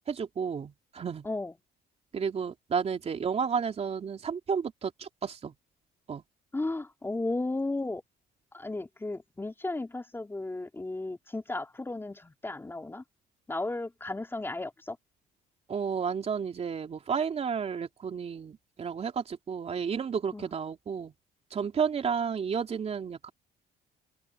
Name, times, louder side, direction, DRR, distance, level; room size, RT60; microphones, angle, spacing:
voice 1, 0.1-1.3 2.1-5.5 6.1-6.2 15.7-21.1 21.5-23.3, right 6 dB, 40° right, 3.4 m, -32 dB
voice 2, 6.5-8.0 8.5-13.0 13.5-15.0 20.3-20.5, left 2 dB, 15° left, 4.1 m, -34 dB
cardioid pair, 110°, 17 cm